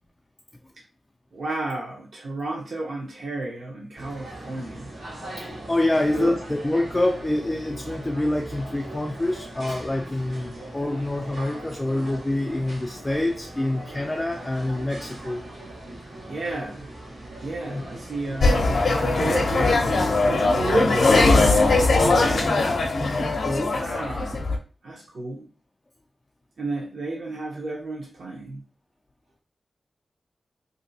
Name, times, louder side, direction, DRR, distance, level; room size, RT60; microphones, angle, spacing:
voice 1, 1.3-4.9 5.9-6.4 16.2-16.9 17.4-21.6 23.6-25.5 26.6-28.6, right 2 dB, 65° right, -2 dB, 0.8 m, -32 dB
sound 1, 4.0-19.6, right 1 dB, 85° right, 1.3 m, -40 dB
voice 2, 5.3-15.4 17.7-17.8 22.4-23.8, left 1 dB, 20° left, 1 dB, 0.3 m, -26 dB
sound 2, 18.4-24.6, left 3 dB, 70° left, 0.5 m, -20 dB
3.2 x 2.6 x 2.6 m, 0.35 s
wide cardioid pair, 125°, 0 cm